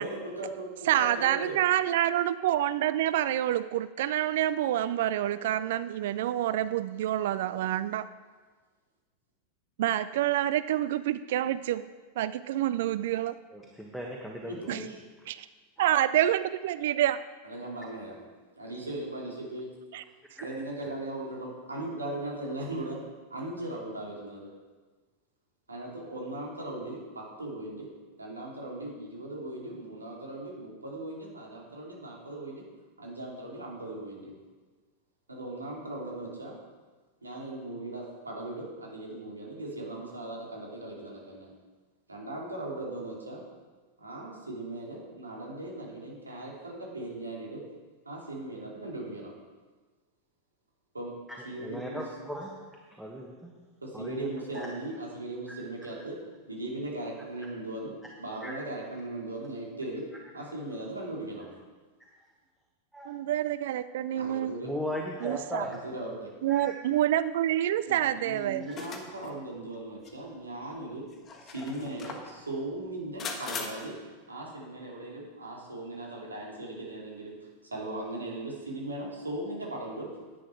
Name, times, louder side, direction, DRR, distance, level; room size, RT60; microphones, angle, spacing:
voice 1, 0.0-1.5 14.4-15.0 17.4-18.2 18.6-19.6 20.4-23.0 23.3-24.5 25.7-27.9 28.2-32.6 33.0-34.4 35.3-36.6 37.2-41.5 42.1-43.4 44.0-47.6 48.0-49.3 50.9-51.1 51.4-52.1 53.8-56.2 56.5-60.0 60.3-61.5 64.1-64.7 65.6-66.3 67.9-71.1 71.4-74.0 74.3-77.4 77.7-80.1, right 1 dB, 80° right, -3 dB, 3.0 m, -38 dB
voice 2, 0.9-8.0 9.8-11.8 12.2-13.4 14.7-14.8 15.3-15.5 15.8-17.2 19.9-20.0 63.1-64.5 65.2-65.6 66.4-68.7, right 12 dB, 55° right, 15 dB, 0.3 m, -27 dB
voice 3, 13.5-14.9 20.3-20.4 51.3-52.5 52.9-53.5 53.9-54.7 58.4-58.5 62.9-63.1 64.6-65.8 66.5-66.7, equal, ahead, -1 dB, 1.3 m, -37 dB
sound 1, 68.7-69.3 70.1-70.2 71.1-72.3 73.2-73.7, left 5 dB, 25° left, 1.4 m, -39 dB
10.5 x 9.4 x 4.6 m, 1.4 s
figure-of-eight pair, 90°, 0 cm